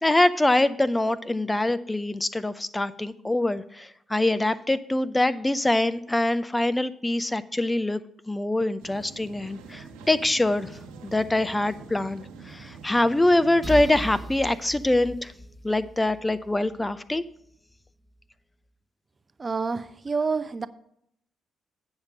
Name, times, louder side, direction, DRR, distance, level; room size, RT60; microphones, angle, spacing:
voice 1, 0.0-8.0 8.3-15.3 15.6-17.2, left 1 dB, 15° left, 14 dB, 0.5 m, -24 dB
sound 1, 8.8-14.3, right 4 dB, 85° right, 1.4 m, -45 dB
sound 2, 13.6-17.3, equal, 5° right, 1.2 m, -38 dB
voice 2, 19.4-20.7, right 4 dB, 35° right, 14 dB, 0.6 m, -28 dB
8.8 x 5.8 x 6.3 m, 0.72 s
hypercardioid pair, 50°, 0 cm